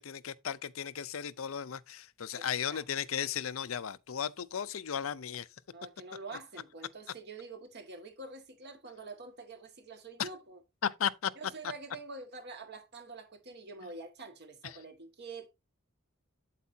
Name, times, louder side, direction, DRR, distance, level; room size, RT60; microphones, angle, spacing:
voice 1, 0.0-5.5 10.2-10.3 10.8-11.3 14.6-14.7, left 8 dB, 75° left, 0.6 m, -35 dB
voice 2, 2.7-3.0 5.7-10.6 11.3-15.5, right 3 dB, 55° right, 1.8 m, -46 dB
8.4 x 8.2 x 2.7 m
head